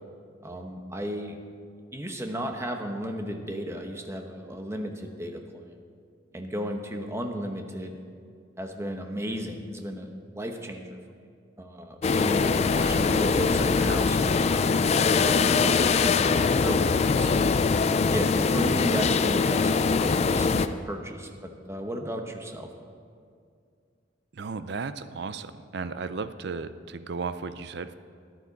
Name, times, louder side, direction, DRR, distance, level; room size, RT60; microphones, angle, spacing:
voice 1, 0.4-1.4 1.9-5.8 6.3-8.0 8.6-11.0 11.6-17.5 18.1-19.7 20.0-22.7, equal, 15° right, 4 dB, 0.9 m, -35 dB
sound 1, 12.0-20.7, left 4 dB, 35° left, 0.3 m, -22 dB
voice 2, 24.3-27.9, right 4 dB, 60° right, 12 dB, 0.5 m, -35 dB
13.0 x 11.0 x 4.1 m, 2.2 s
head